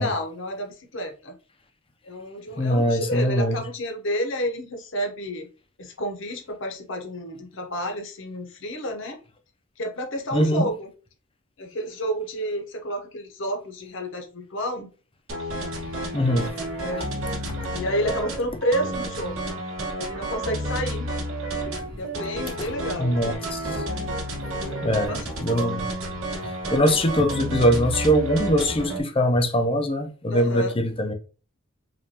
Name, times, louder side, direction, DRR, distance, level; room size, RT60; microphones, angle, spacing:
voice 1, 0.0-1.3 2.0-5.5 5.8-9.2 9.8-10.9 11.6-14.9 16.8-17.1 17.7-19.5 19.9-21.1 21.9-23.2 23.8-24.1 24.4-25.2 30.3-30.8, equal, 60° left, 1.0 m, -30 dB
voice 2, 2.6-3.6 10.3-10.7 16.1-16.5 17.0-17.1 17.5-17.6 21.8-21.9 22.6-22.7 23.0-23.8 24.8-25.9 26.4-31.1, equal, 25° left, 0.6 m, -22 dB
sound 1, 15.3-29.0, right 1 dB, 75° right, 1.5 m, -31 dB
5.1 x 2.6 x 2.9 m
head